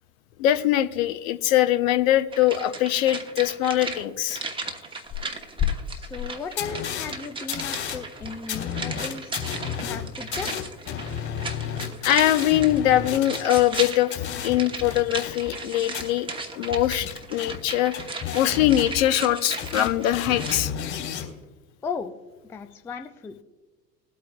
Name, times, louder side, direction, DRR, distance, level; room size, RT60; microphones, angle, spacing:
voice 1, 0.4-4.4 12.0-14.1 14.4-16.3 16.5-17.9 18.3-20.7, left 13 dB, 55° left, 11 dB, 0.9 m, -22 dB
sound 1, 2.3-20.7 21.0-21.1, right 3 dB, 10° right, 1.0 m, -36 dB
sound 2, 5.1-5.2 5.6-5.7 6.2-6.3 6.6-7.1 7.5-15.6 15.9-16.0 16.7-19.3 19.6-21.3, left 9 dB, 40° left, 3.1 m, -32 dB
voice 2, 6.0-9.3 9.8-10.7 21.8-22.1 22.4-23.3, left 5 dB, 5° left, 8 dB, 0.3 m, -36 dB
21.0 x 8.5 x 2.3 m, 1.2 s
figure-of-eight pair, 75°, 47 cm